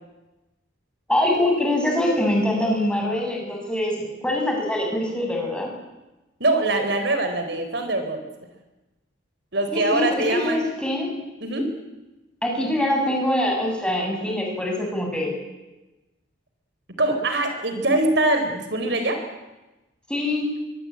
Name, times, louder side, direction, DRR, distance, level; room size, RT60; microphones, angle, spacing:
voice 1, 1.1-5.7 9.7-11.1 12.4-15.3 20.1-20.5, left 1 dB, 5° left, 0 dB, 7.1 m, -24 dB
voice 2, 6.4-8.2 9.5-10.6 11.4-11.7 17.0-19.2, right 2 dB, 60° right, 6 dB, 4.3 m, -23 dB
24.0 x 24.0 x 8.9 m, 1.0 s
head